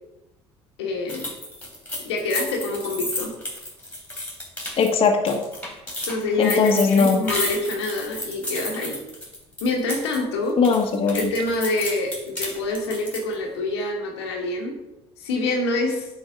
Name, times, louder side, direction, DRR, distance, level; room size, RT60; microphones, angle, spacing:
voice 1, 0.8-1.3 2.0-3.3 6.0-8.9 9.6-10.6 11.1-14.7 15.2-16.1, left 2 dB, 80° left, 0 dB, 1.4 m, -26 dB
sound 1, 1.1-10.2 10.5-13.3, left 1 dB, 10° left, 2.9 m, -32 dB
voice 2, 4.8-5.4 6.4-7.2 10.6-11.3, left 5 dB, 40° left, 2 dB, 1.3 m, -19 dB
9.2 x 4.0 x 5.3 m, 0.95 s
hypercardioid pair, 65°, 14 cm